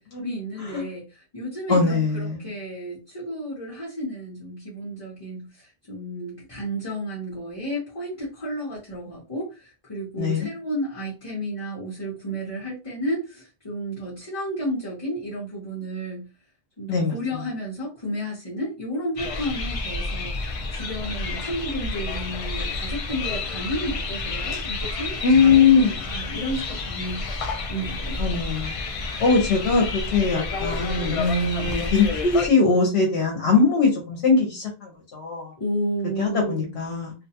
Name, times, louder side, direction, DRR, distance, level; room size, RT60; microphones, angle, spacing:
voice 1, 0.2-16.3 16.8-28.2 35.6-36.7, equal, 35° left, -6 dB, 0.9 m, -32 dB
voice 2, 1.7-2.5 10.2-10.5 16.9-17.1 25.2-26.0 28.2-28.8 29.2-35.5 36.2-37.1, left 4 dB, 75° left, 2 dB, 0.9 m, -21 dB
sound 1, 19.2-32.5, left 3 dB, 60° left, 0.3 m, -30 dB
2.5 x 2.2 x 2.8 m, 0.31 s
omnidirectional pair, 1.1 m